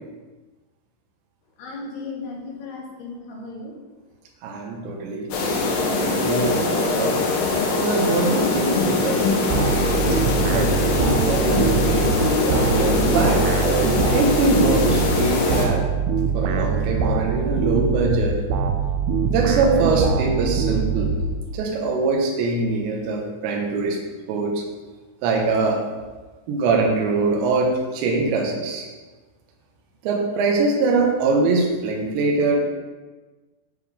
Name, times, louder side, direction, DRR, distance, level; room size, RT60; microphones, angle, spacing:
voice 1, 1.6-3.7, left 3 dB, 65° left, -2 dB, 2.9 m, -35 dB
voice 2, 4.4-5.7 6.1-7.2 7.8-9.4 10.4-13.5 14.1-15.8 16.3-18.4 19.3-21.1 21.5-24.0 24.3-24.6 25.2-25.8 26.5-28.9 30.0-32.6, right 3 dB, 70° right, 0 dB, 3.2 m, -23 dB
sound 1, 5.3-15.7, left 3 dB, 85° left, 1.9 m, -22 dB
sound 2, 9.5-21.7, right 6 dB, 90° right, 2.5 m, -23 dB
9.9 x 5.6 x 3.5 m, 1.3 s
omnidirectional pair, 5.6 m